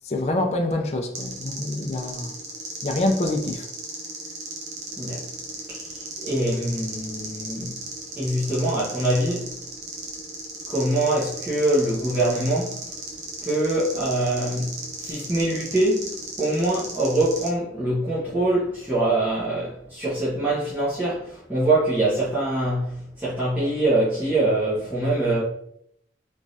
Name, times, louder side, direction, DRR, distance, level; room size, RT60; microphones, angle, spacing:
voice 1, 0.1-2.4 2.8-3.7, left 1 dB, 35° left, 0.4 m, -26 dB
sound 1, 1.1-17.5, right 2 dB, 40° right, 0.7 m, -36 dB
voice 2, 6.2-7.8 8.2-9.5 10.7-12.8 13.4-25.4, right 1 dB, 10° right, 0.9 m, -24 dB
3.5 x 3.1 x 2.7 m
head